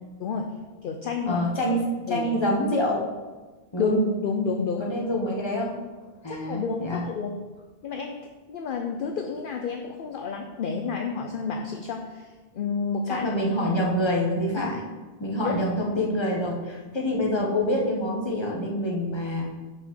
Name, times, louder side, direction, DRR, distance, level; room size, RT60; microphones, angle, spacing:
voice 1, 0.2-0.5 0.8-1.4 2.1-2.3 3.8-4.9 6.3-7.4 7.8-8.2 8.5-13.3 14.6-14.7 15.4-15.6, left 5 dB, 60° left, 3 dB, 0.7 m, -30 dB
voice 2, 1.3-3.1 3.7-4.0 4.8-5.7 6.2-7.0 13.1-14.9 15.2-19.4, left 1 dB, 25° left, -2 dB, 1.3 m, -26 dB
5.9 x 5.0 x 6.3 m, 1.3 s
omnidirectional pair, 1.0 m